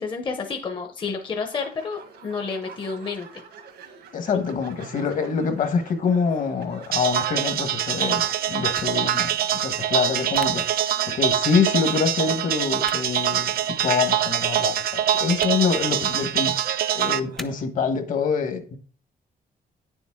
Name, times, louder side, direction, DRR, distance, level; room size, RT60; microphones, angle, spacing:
voice 1, 0.0-3.4, left 5 dB, 30° left, 0.8 m, -30 dB
sound 1, 1.5-17.5, right 6 dB, 85° right, 1.6 m, -46 dB
voice 2, 4.1-10.6 11.1-16.5 16.9-18.8, left 5 dB, 55° left, 1.4 m, -25 dB
sound 2, 6.9-17.2, right 10 dB, 65° right, 0.5 m, -24 dB
sound 3, 8.7-8.9 10.3-10.5 11.5-11.6 12.8-13.0 14.0-14.2 15.3-15.5 16.1-16.3 17.4-17.5, equal, ahead, 0.5 m, -39 dB
9.6 x 7.1 x 3.6 m
wide cardioid pair, 165°, 17 cm